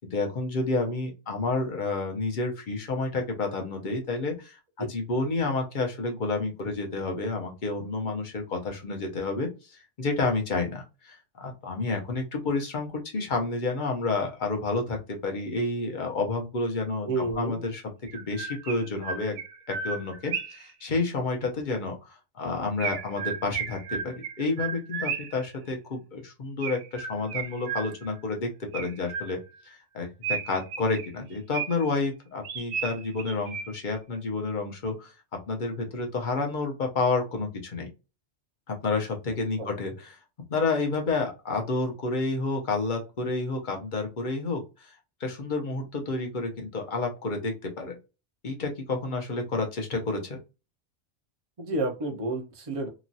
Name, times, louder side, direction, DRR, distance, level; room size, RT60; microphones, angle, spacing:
voice 1, 0.1-17.8 18.1-19.4 19.7-29.4 29.6-35.1 35.5-37.9 38.7-40.2 40.5-48.0 48.4-50.4, left 3 dB, 45° left, 3 dB, 0.9 m, -30 dB
voice 2, 17.0-17.6 39.6-39.7 51.6-52.9, right 2 dB, 35° right, 2 dB, 0.7 m, -30 dB
Chirp tweet, 17.3-17.4 18.1-20.7 22.8-25.5 26.6-28.2 28.7-29.6 30.2-32.0 32.4-34.0, right 7 dB, 85° right, 1.0 m, -34 dB
3.0 x 2.4 x 2.6 m, 0.28 s
omnidirectional pair, 1.2 m